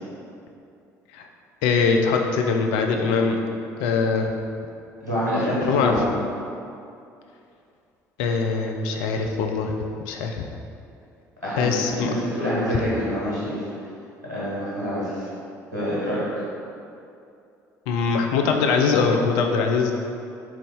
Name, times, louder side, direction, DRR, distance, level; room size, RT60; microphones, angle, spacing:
voice 1, 1.6-3.4 3.8-4.3 5.7-6.0 8.2-9.7 10.0-10.4 11.6-12.1 17.9-19.9, left 5 dB, 65° left, 3 dB, 0.4 m, -22 dB
voice 2, 5.0-6.1 11.4-11.7 11.9-13.6 14.3-15.3 15.7-16.4, equal, 90° right, -10 dB, 1.1 m, -26 dB
3.8 x 3.0 x 3.5 m, 2.6 s
figure-of-eight pair, 55°, 9 cm